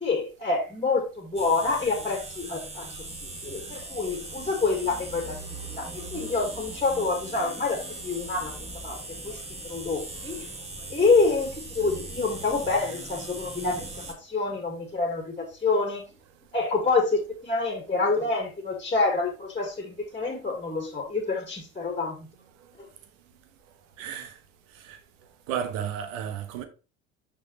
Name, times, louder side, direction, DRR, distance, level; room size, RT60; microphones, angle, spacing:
voice 1, 0.0-8.5 8.8-9.0 9.2-10.5 10.9-16.0 16.5-22.3 22.8-22.9, left 3 dB, 15° left, 1.9 m, -27 dB
sound 1, 1.4-14.1, right 2 dB, 15° right, 1.5 m, -39 dB
voice 2, 24.0-24.4 24.8-25.0 25.5-26.7, right 8 dB, 65° right, 1.2 m, -33 dB
6.3 x 5.7 x 3.1 m
figure-of-eight pair, 65°, 42 cm